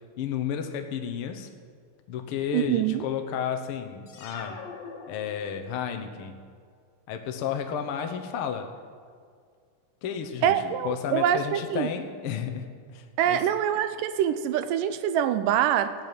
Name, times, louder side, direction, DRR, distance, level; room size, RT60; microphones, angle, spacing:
voice 1, 0.2-1.5 2.1-4.6 5.1-6.4 7.1-8.7 10.0-13.4, left 8 dB, 80° left, 6 dB, 1.2 m, -32 dB
voice 2, 2.5-3.0 10.4-11.9 13.2-15.9, right 10 dB, 80° right, 12 dB, 2.1 m, -25 dB
sound 1, 4.1-5.9, left 4 dB, 60° left, 2.3 m, -43 dB
16.0 x 5.9 x 9.0 m, 2.1 s
omnidirectional pair, 3.9 m